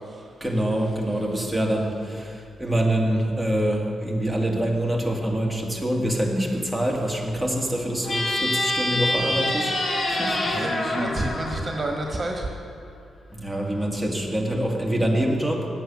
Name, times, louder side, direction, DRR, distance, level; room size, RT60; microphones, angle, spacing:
voice 1, 0.4-9.7 10.1-10.7 13.3-15.7, right 1 dB, ahead, -2 dB, 2.3 m, -25 dB
sound 1, 8.0-12.5, left 1 dB, 45° left, 1.4 m, -26 dB
voice 2, 8.9-9.3 10.5-12.5, right 1 dB, 40° right, 1 dB, 1.5 m, -29 dB
9.2 x 7.9 x 6.3 m, 2.4 s
hypercardioid pair, 40°, 0 cm